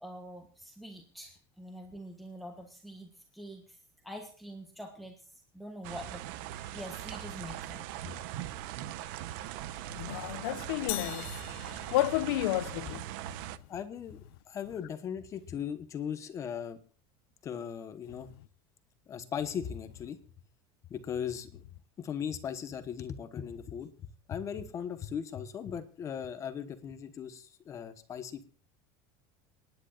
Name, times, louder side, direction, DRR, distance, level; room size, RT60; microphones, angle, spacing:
voice 1, 0.0-3.8 4.0-5.2 5.5-6.2 6.5-8.0, equal, ahead, 1.4 m, -45 dB
sound 1, 5.8-13.6, right 13 dB, 65° right, 0.8 m, -40 dB
voice 2, 9.9-13.1, left 16 dB, 90° left, 0.7 m, -32 dB
sound 2, 10.9-12.8, left 19 dB, 55° left, 0.6 m, -41 dB
voice 3, 13.7-14.2 14.5-16.8 17.4-18.3 19.1-20.2 20.9-21.6 22.0-23.9 24.3-28.4, left 8 dB, 25° left, 1.1 m, -38 dB
28.5 x 10.5 x 2.5 m
cardioid pair, 170°, 12 cm